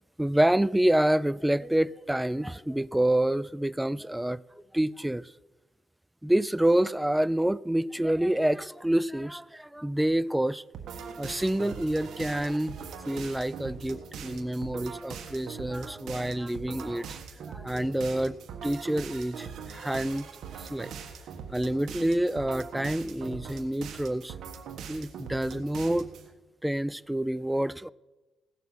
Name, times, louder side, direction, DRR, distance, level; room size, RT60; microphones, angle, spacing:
voice 1, 0.2-4.4 4.7-5.3 6.2-10.6 11.2-12.7 13.1-20.3 20.6-20.9 21.5-24.3 24.9-26.1 26.6-27.9, right 1 dB, 5° right, 0.3 m, -27 dB
sound 1, 10.7-26.3, right 6 dB, 70° right, 1.4 m, -41 dB
16.5 x 6.9 x 6.0 m
cardioid pair, 90°, 0 cm